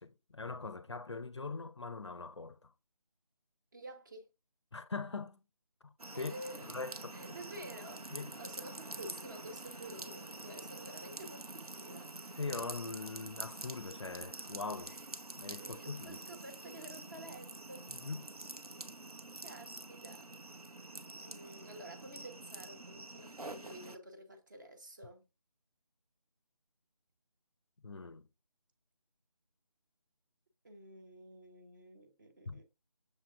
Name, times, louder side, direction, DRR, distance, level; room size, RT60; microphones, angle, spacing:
voice 1, 0.0-2.7 4.7-5.4 5.8-6.3 6.7-7.2 8.1-8.3 12.4-15.0 15.4-16.2 17.9-18.3 27.8-28.3 32.5-32.6, left 4 dB, 50° left, 0.4 m, -42 dB
voice 2, 3.7-4.3 6.1-6.8 7.1-12.1 14.9-15.1 15.6-18.0 18.7-19.0 19.4-20.3 21.2-25.2 30.6-32.6, right 1 dB, 35° right, 0.8 m, -50 dB
sound 1, 6.0-24.0, right 2 dB, 90° right, 0.7 m, -47 dB
6.6 x 3.2 x 2.4 m
figure-of-eight pair, 160°, 19 cm